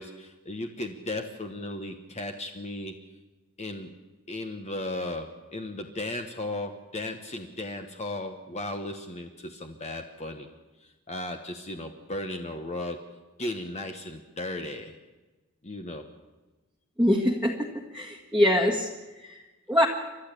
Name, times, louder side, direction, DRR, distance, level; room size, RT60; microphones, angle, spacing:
voice 1, 0.0-2.9 3.6-3.9 4.3-10.5 10.8-13.1 13.4-15.0 15.6-16.1, left 1 dB, 30° left, 5 dB, 1.1 m, -36 dB
voice 2, 17.0-17.7 17.9-18.9 19.2-19.4 19.7-19.9, left 1 dB, 5° right, -2 dB, 1.7 m, -23 dB
29.0 x 12.5 x 8.4 m, 1.2 s
head